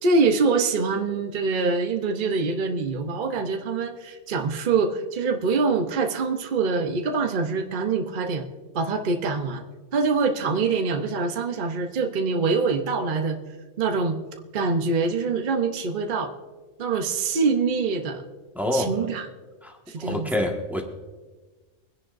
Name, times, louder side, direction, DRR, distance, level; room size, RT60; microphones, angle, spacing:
voice 1, 0.0-8.4 8.7-9.6 9.9-13.4 13.8-14.2 14.5-16.3 16.8-18.2 18.7-19.3 19.9-20.4, right 4 dB, 45° right, 4 dB, 0.9 m, -24 dB
voice 2, 18.5-18.9 19.6-20.8, left 1 dB, ahead, 0 dB, 1.5 m, -27 dB
25.0 x 10.5 x 2.6 m, 1.3 s
omnidirectional pair, 1.3 m